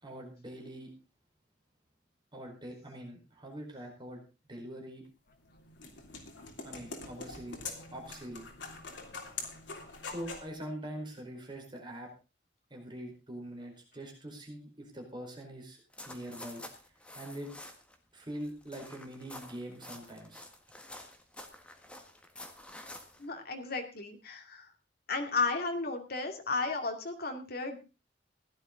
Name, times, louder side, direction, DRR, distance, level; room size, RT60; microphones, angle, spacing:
voice 1, 0.0-0.9 2.3-4.2 4.5-5.0 6.6-7.6 7.9-8.5 10.0-12.1 12.7-15.8 16.0-16.6 17.1-17.5 18.1-20.4, right 1 dB, 25° right, 1 dB, 4.8 m, -43 dB
sound 1, 5.3-10.5, left 4 dB, 80° left, 3.2 m, -44 dB
sound 2, 15.9-18.0 18.2-23.3, left 1 dB, 5° left, 1.7 m, -49 dB
voice 2, 23.2-24.7 25.1-27.8, left 3 dB, 55° left, 4 dB, 2.6 m, -34 dB
16.0 x 11.0 x 3.9 m, 0.31 s
head